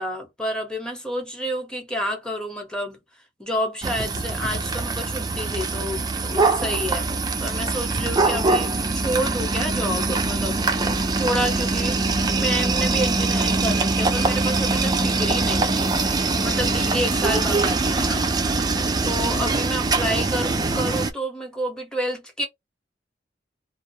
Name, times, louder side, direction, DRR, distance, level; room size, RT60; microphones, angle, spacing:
voice 1, 0.0-3.0 3.4-7.1 7.4-10.7 11.2-15.9 16.3-18.2 19.0-22.5, equal, 5° left, 0.8 m, -29 dB
sound 1, 3.8-21.1, right 3 dB, 20° right, 0.4 m, -23 dB
2.3 x 2.0 x 2.6 m
head